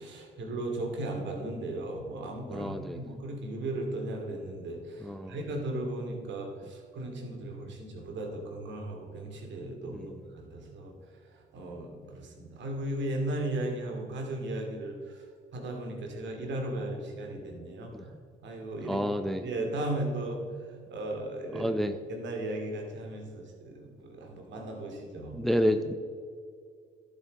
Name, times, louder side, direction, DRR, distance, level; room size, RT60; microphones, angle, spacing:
voice 1, 0.0-10.9 11.2-15.3 15.5-18.1 18.4-19.1 19.4-20.4 20.9-21.7 22.1-25.4, right 1 dB, 60° right, 1 dB, 2.4 m, -36 dB
voice 2, 2.5-3.0 5.0-5.3 9.9-10.0 17.9-18.0 18.9-19.4 21.6-22.0 25.3-25.9, equal, ahead, 9 dB, 0.6 m, -29 dB
11.5 x 7.6 x 4.0 m, 2.2 s
supercardioid pair, 65°, 21 cm